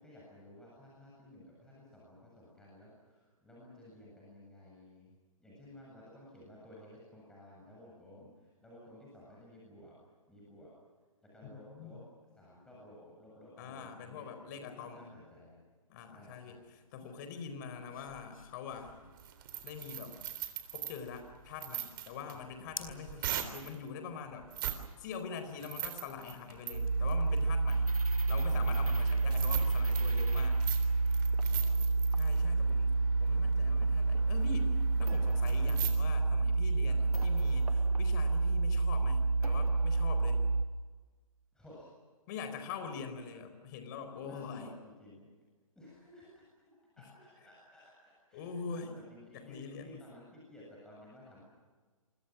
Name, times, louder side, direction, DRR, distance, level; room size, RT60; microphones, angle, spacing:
voice 1, 0.0-9.9 10.3-10.7 11.3-12.0 12.4-14.3 14.5-15.6 16.1-16.6 22.3-22.4 22.8-23.2 29.0-29.3 31.4-31.9 32.5-33.3 36.9-37.0 41.5-41.9 43.9-45.3 45.7-46.4 47.0-51.4, left 1 dB, 5° left, -6 dB, 7.8 m, -55 dB
voice 2, 11.4-11.9 13.6-15.1 15.9-16.6 16.9-19.0 19.6-20.2 20.7-24.5 25.0-27.9 28.3-30.6 32.2-40.4 42.3-44.7 47.0-47.1 48.3-48.9 49.3-50.0, left 6 dB, 35° left, 8 dB, 4.6 m, -44 dB
sound 1, 16.5-29.7, left 4 dB, 80° left, 4.3 m, -56 dB
sound 2, 18.7-23.7 24.4-24.8 25.1-35.9, right 12 dB, 40° right, 3.6 m, -42 dB
sound 3, 26.7-40.7, right 3 dB, 85° right, 1.6 m, -29 dB
29.0 x 24.5 x 6.3 m, 1.4 s
figure-of-eight pair, 140°, 18 cm